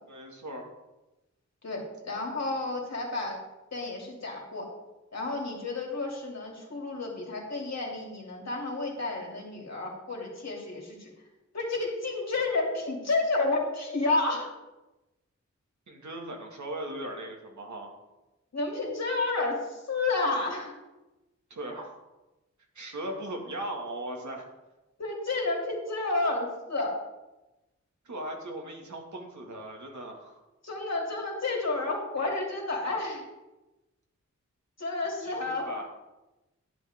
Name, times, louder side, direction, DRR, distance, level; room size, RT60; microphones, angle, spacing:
voice 1, 0.1-0.7 15.9-17.9 21.5-22.0 22.7-24.4 28.0-30.4 35.2-35.9, right 1 dB, 75° right, 0 dB, 2.2 m, -38 dB
voice 2, 1.6-3.4 3.7-4.7 5.1-11.1 11.5-14.5 18.5-20.7 25.0-26.9 30.6-33.3 34.8-35.7, left 3 dB, 60° left, -1 dB, 2.9 m, -31 dB
11.0 x 10.5 x 3.7 m, 1.0 s
wide cardioid pair, 90°, 29 cm